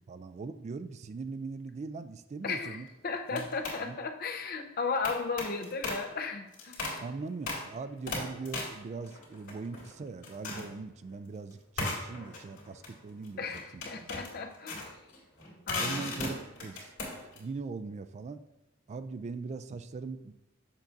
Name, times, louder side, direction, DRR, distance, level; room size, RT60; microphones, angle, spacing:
voice 1, 0.0-2.9 3.3-3.5 3.8-4.0 7.0-13.5 13.7-14.2 15.8-18.4 18.9-20.3, right 4 dB, 35° right, 12 dB, 0.3 m, -40 dB
sound 1, 2.4-2.8 3.3-3.9 5.0-6.1 6.5-7.1 7.5-7.7 8.1-10.0 10.2-10.8 11.8-17.4, left 2 dB, 70° left, 2.2 m, -38 dB
voice 2, 2.4-6.8 13.4-14.8 15.7-16.3, left 4 dB, 50° left, 5 dB, 0.6 m, -35 dB
7.2 x 2.6 x 5.8 m, 0.90 s
head